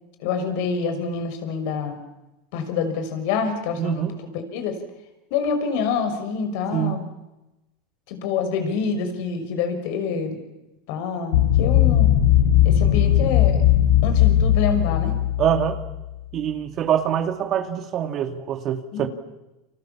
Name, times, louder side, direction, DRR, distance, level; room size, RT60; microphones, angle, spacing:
voice 1, 0.2-2.0 2.5-4.1 4.3-4.8 5.3-7.0 8.1-10.4 10.9-12.1 12.6-13.6 14.0-15.1 18.9-19.1, left 5 dB, 65° left, 6.1 m, -26 dB
voice 2, 3.8-4.2 6.7-7.0 15.4-15.8 16.3-19.1, right 9 dB, 40° right, 2.4 m, -24 dB
sound 1, 11.3-16.0, left 11 dB, 80° left, 2.6 m, -18 dB
30.0 x 26.5 x 7.3 m
supercardioid pair, 115°, 0 cm